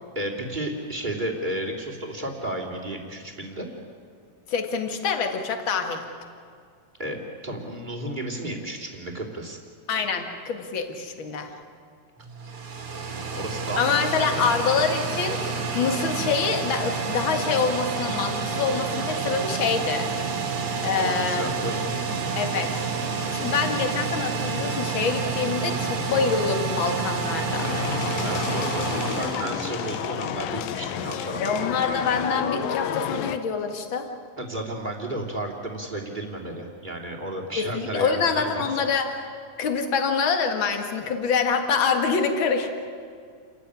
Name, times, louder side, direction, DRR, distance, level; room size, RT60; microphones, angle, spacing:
voice 1, 0.1-3.7 7.0-9.6 13.1-14.6 20.9-21.9 28.2-31.4 34.4-38.7, right 1 dB, 15° right, 1 dB, 2.6 m, -33 dB
voice 2, 4.5-6.1 9.9-11.5 13.8-15.4 15.7-20.1 20.8-21.5 22.4-22.9 23.3-27.7 31.4-34.1 37.6-39.2 39.6-42.7, left 5 dB, 40° left, 5 dB, 2.2 m, -25 dB
sound 1, 12.2-30.3, right 4 dB, 45° right, 2.8 m, -29 dB
sound 2, 27.5-33.4, left 9 dB, 90° left, 2.7 m, -30 dB
29.0 x 14.5 x 9.9 m, 2.1 s
omnidirectional pair, 3.9 m